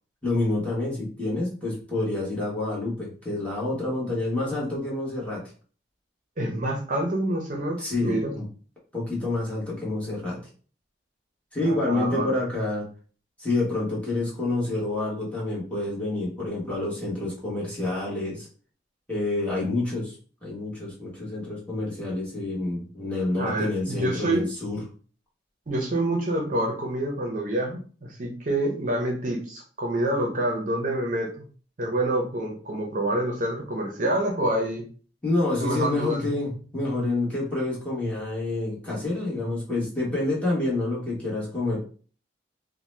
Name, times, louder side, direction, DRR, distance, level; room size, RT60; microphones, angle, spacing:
voice 1, 0.2-5.4 7.8-8.5 8.9-10.4 11.5-12.9 13.4-18.5 19.1-20.2 20.4-24.8 35.2-41.8, left 2 dB, 5° left, -6 dB, 1.1 m, -28 dB
voice 2, 6.4-8.3 11.6-12.3 23.4-24.4 25.7-31.3 31.8-34.8 35.6-36.2, right 1 dB, 45° right, 0 dB, 0.6 m, -27 dB
2.7 x 2.1 x 3.2 m, 0.40 s
head